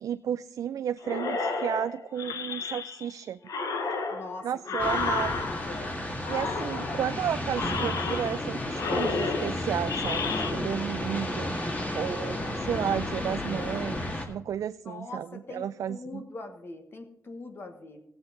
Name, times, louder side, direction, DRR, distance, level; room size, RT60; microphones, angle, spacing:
voice 1, 0.0-3.4 4.4-5.3 6.3-11.5 11.9-16.2, right 9 dB, 70° right, 11 dB, 0.3 m, -32 dB
sound 1, 1.0-3.1 3.5-5.9 6.2-7.1 7.5-8.5 8.7-10.5, left 4 dB, 85° left, 1.2 m, -32 dB
voice 2, 4.1-5.3 5.6-5.9 14.8-18.0, left 2 dB, 40° left, 5 dB, 1.4 m, -42 dB
sound 2, 4.8-14.3, left 1 dB, 25° left, 1.9 m, -32 dB
16.0 x 7.9 x 3.8 m, 0.77 s
wide cardioid pair, 130°, 6 cm